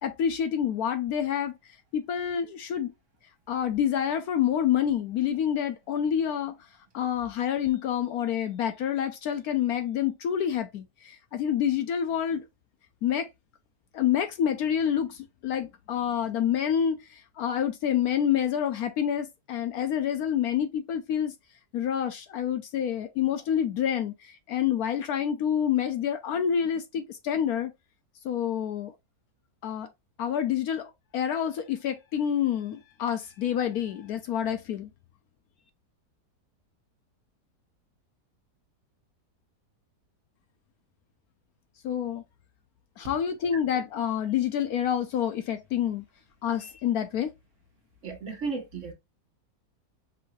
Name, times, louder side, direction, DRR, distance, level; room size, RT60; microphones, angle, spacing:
voice 1, 0.0-1.5 1.9-2.9 3.5-6.6 6.9-12.4 13.0-13.3 13.9-21.3 21.7-27.7 28.2-28.9 29.6-29.9 30.2-34.9 41.8-42.2 43.0-46.0 46.4-47.3, left 9 dB, 70° left, 1.0 m, -28 dB
voice 2, 48.0-48.9, right 4 dB, 50° right, 1.3 m, -34 dB
5.6 x 2.6 x 3.0 m
omnidirectional pair, 1.8 m